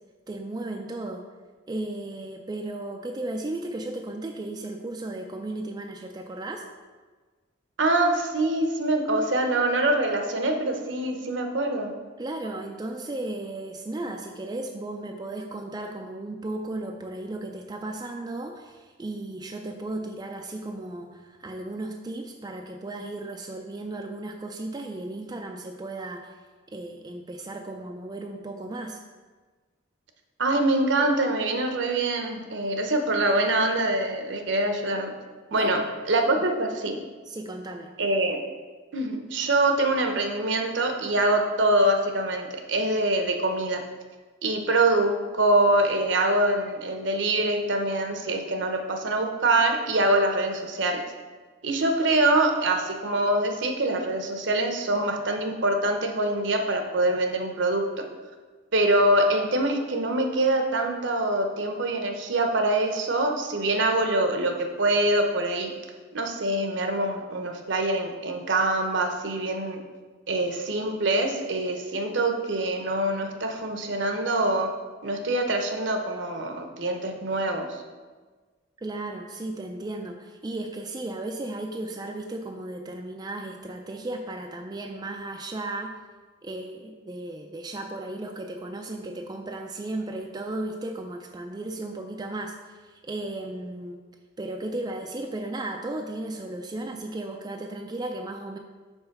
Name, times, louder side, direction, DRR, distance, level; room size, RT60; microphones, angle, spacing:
voice 1, 0.3-1.3 1.7-6.6 12.2-26.4 26.7-29.0 35.5-36.4 37.3-37.9 78.8-86.0 86.4-94.1 94.4-98.6, right 2 dB, 20° right, 2 dB, 0.4 m, -35 dB
voice 2, 7.8-11.9 30.4-35.1 35.5-35.8 36.1-37.0 38.0-38.4 38.9-43.8 44.4-51.0 51.6-58.0 58.7-65.7 66.1-69.8 70.3-74.7 75.0-77.8, right 2 dB, 65° right, 4 dB, 0.8 m, -24 dB
5.5 x 4.3 x 5.8 m, 1.4 s
head